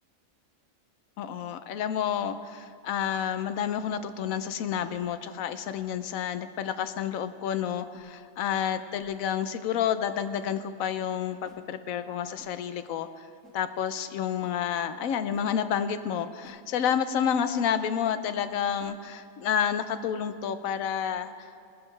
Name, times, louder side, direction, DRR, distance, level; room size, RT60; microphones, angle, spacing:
voice 1, 1.2-13.3 13.5-21.7, left 8 dB, 80° left, 11 dB, 1.1 m, -30 dB
sound 1, 5.7-5.9 6.8-7.0 7.9-8.1 9.0-9.1 10.3-10.5 11.4-11.7 12.4-12.6 13.4-13.6 14.4-14.6 15.3-15.5 16.4-16.6 17.5-17.7 18.8-19.0, equal, ahead, 1.2 m, -56 dB
18.5 x 11.5 x 3.2 m, 2.3 s
omnidirectional pair, 1.4 m